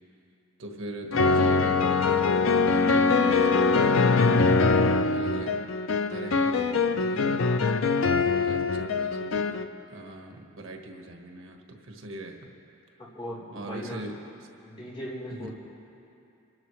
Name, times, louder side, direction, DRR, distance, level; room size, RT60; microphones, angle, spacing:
voice 1, 0.6-4.6 4.9-5.6 6.1-7.4 8.4-9.6 9.9-12.5 13.5-14.2 15.3-15.5, right 1 dB, 80° right, 3 dB, 1.4 m, -41 dB
sound 1, 1.1-9.6, left 4 dB, 75° left, 0.6 m, -23 dB
voice 2, 13.0-14.0 14.6-15.5, equal, 25° left, -7 dB, 3.7 m, -38 dB
28.0 x 12.5 x 3.2 m, 2.7 s
head